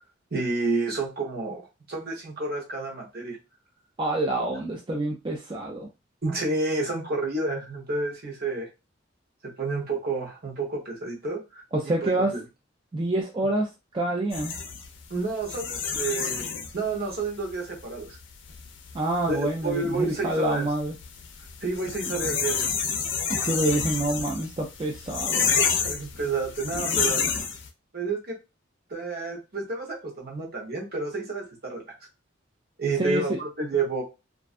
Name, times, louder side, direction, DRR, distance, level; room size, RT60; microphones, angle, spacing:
voice 1, 0.3-3.4 6.2-8.7 9.4-12.4 15.1-16.5 16.7-18.2 19.3-20.7 21.6-22.7 25.4-27.2 27.9-28.3 28.9-31.8 32.8-34.0, right 3 dB, 55° right, -1 dB, 0.9 m, -30 dB
voice 2, 4.0-5.9 11.7-12.3 12.9-13.7 13.9-14.5 18.9-20.9 23.3-25.5 27.2-27.3 33.0-33.4, right 2 dB, 25° right, 0 dB, 0.4 m, -27 dB
sound 1, 14.3-27.7, left 6 dB, 65° left, 0.5 m, -30 dB
2.4 x 2.2 x 2.4 m, 0.26 s
head